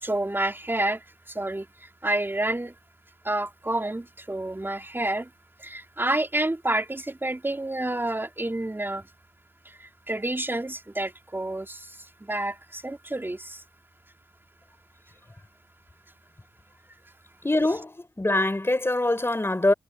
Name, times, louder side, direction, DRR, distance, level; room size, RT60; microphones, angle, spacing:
voice 1, 0.0-2.7 3.2-5.3 5.6-9.1 9.7-13.6, right 1 dB, 20° right, 3.7 m, -29 dB
voice 2, 17.4-19.7, left 2 dB, 20° left, 4.9 m, -24 dB
supercardioid pair, 45°, 11 cm